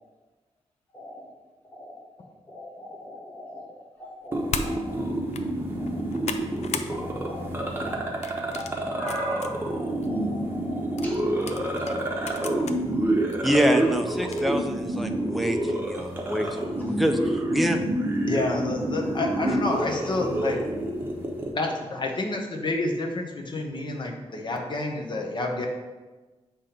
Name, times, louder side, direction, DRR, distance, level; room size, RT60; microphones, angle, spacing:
voice 1, 0.9-1.3 1.7-1.9 2.5-5.1 5.7-6.1 6.6-7.5 7.8-8.0 8.5-11.4 11.8-12.2 13.8-13.9 15.1-15.6 16.0-16.1 16.8-16.9 20.2-20.5 20.9-21.0 21.4-22.2 24.3-24.4, equal, 15° left, -5 dB, 1.6 m, -41 dB
sound 1, 4.3-21.5, right 1 dB, 20° right, 0.8 m, -28 dB
sound 2, 4.5-4.7 5.2-5.4 5.9-6.9 7.3-7.6 8.2-9.5 10.0-10.1 11.0-12.8 13.3-13.4 14.2-14.6, left 6 dB, 70° left, 0.4 m, -35 dB
voice 2, 13.4-17.8, equal, ahead, 3 dB, 0.5 m, -26 dB
voice 3, 18.3-20.6 21.5-25.7, left 2 dB, 40° left, 2 dB, 0.8 m, -29 dB
7.5 x 2.9 x 5.0 m, 1.2 s
wide cardioid pair, 140°, 12 cm